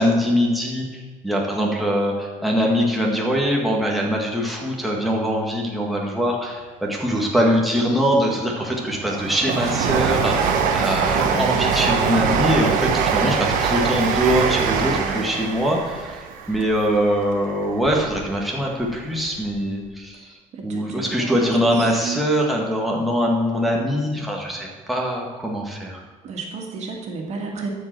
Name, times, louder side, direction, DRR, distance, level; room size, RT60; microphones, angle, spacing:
voice 1, 0.0-20.4 20.6-26.0, equal, ahead, -2 dB, 1.8 m, -22 dB
voice 2, 5.7-6.1 10.8-11.5 14.8-15.2 20.5-21.7 21.9-22.2 26.2-27.7, right 4 dB, 55° right, 0 dB, 2.3 m, -33 dB
Train, 8.1-18.3 18.7-19.6 19.8-19.9, right 6 dB, 85° right, 1.3 m, -23 dB
13.0 x 5.4 x 7.6 m, 1.4 s
cardioid pair, 135°, 14 cm